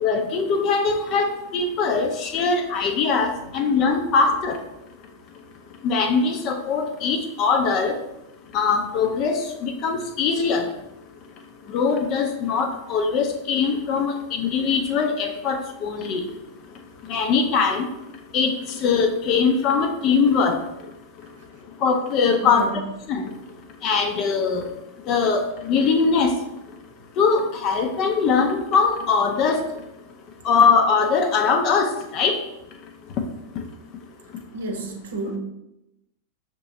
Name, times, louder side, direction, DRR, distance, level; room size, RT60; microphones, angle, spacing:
voice 1, 0.0-4.6 5.8-7.9 8.5-10.7 11.7-16.2 17.1-17.8 18.3-18.5 18.8-20.6 21.8-22.7 23.1-23.3 23.8-24.6 25.1-26.3 27.2-29.6 30.5-32.4, left 5 dB, 35° left, 5 dB, 0.5 m, -21 dB
voice 2, 22.4-22.7 34.5-35.4, right 2 dB, 65° right, 2 dB, 0.8 m, -31 dB
6.1 x 3.0 x 2.6 m, 0.89 s
figure-of-eight pair, 90°, 0 cm